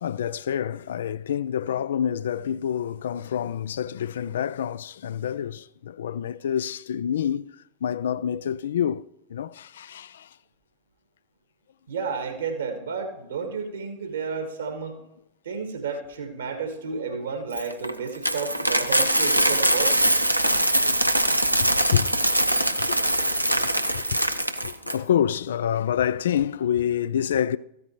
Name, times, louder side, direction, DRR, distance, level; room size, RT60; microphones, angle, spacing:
voice 1, 0.0-10.3 21.6-22.1 22.9-23.1 23.6-23.7 23.9-24.2 24.6-27.6, left 9 dB, 60° left, 0.3 m, -27 dB
voice 2, 11.9-15.0 15.4-19.9, right 5 dB, 70° right, 1.9 m, -31 dB
Coin (dropping), 17.5-25.0, right 1 dB, 90° right, 0.6 m, -22 dB
14.5 x 8.7 x 3.1 m
figure-of-eight pair, 90°, 0 cm